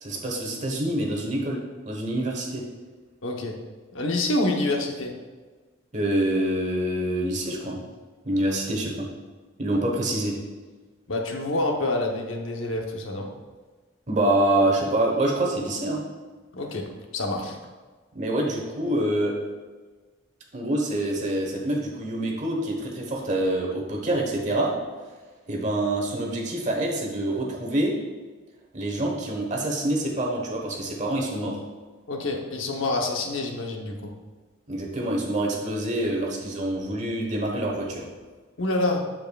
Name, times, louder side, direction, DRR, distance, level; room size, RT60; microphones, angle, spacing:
voice 1, 0.0-1.6 1.9-2.6 5.9-7.8 8.2-9.1 9.6-10.4 14.1-16.0 18.1-19.4 20.5-24.7 25.5-27.9 28.7-31.6 34.7-38.0, right 1 dB, 35° right, -1 dB, 1.1 m, -26 dB
voice 2, 3.2-3.6 3.9-5.1 11.1-13.3 16.5-17.6 32.1-34.1 38.6-39.0, left 2 dB, 80° left, 2 dB, 0.9 m, -27 dB
7.6 x 7.2 x 2.3 m, 1.3 s
head